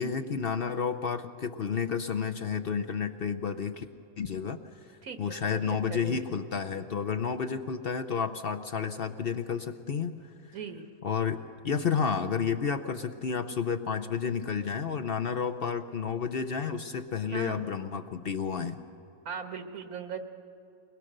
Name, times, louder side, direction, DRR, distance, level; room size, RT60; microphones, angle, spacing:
voice 1, 0.0-3.9 4.2-4.6 4.9-10.2 10.5-10.6 11.0-18.8, left 6 dB, 55° left, 7 dB, 0.7 m, -31 dB
voice 2, 5.0-5.6 5.9-6.4 10.5-10.8 17.3-17.6 19.3-20.2, right 6 dB, 85° right, 6 dB, 1.9 m, -39 dB
23.5 x 20.5 x 6.6 m, 2.9 s
omnidirectional pair, 1.5 m